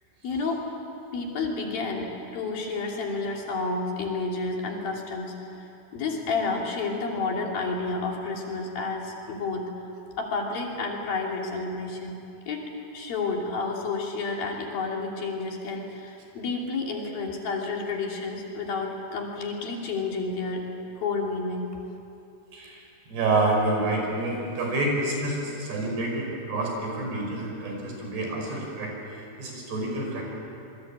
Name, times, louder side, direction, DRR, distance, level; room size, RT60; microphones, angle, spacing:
voice 1, 0.2-0.6 1.1-9.7 10.2-12.2 12.5-20.6 21.0-21.7, left 3 dB, 65° left, 0 dB, 4.7 m, -30 dB
voice 2, 22.5-30.2, right 2 dB, 90° right, 0 dB, 7.4 m, -28 dB
26.5 x 23.0 x 8.8 m, 2.8 s
omnidirectional pair, 4.6 m